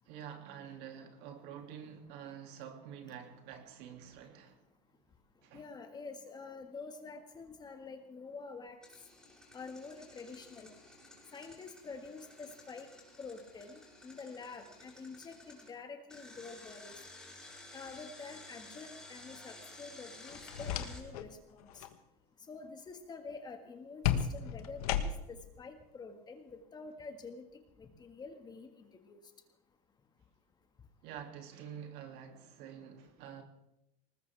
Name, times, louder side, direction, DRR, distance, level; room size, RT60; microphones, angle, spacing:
voice 1, 0.1-4.6 5.4-5.6 31.0-33.4, right 8 dB, 60° right, 2.6 m, -48 dB
voice 2, 5.5-8.8 9.5-10.7 11.3-12.9 13.2-16.9 17.7-21.8 22.5-24.0 24.3-27.4 27.8-29.2, left 4 dB, 20° left, 1.7 m, -47 dB
Engine, 8.8-15.7 16.1-21.0, left 2 dB, 5° left, 6.4 m, -54 dB
sound 1, 20.3-21.3 21.6-22.0 24.0-25.4, left 9 dB, 85° left, 1.4 m, -34 dB
20.0 x 20.0 x 3.5 m
supercardioid pair, 135°, 19 cm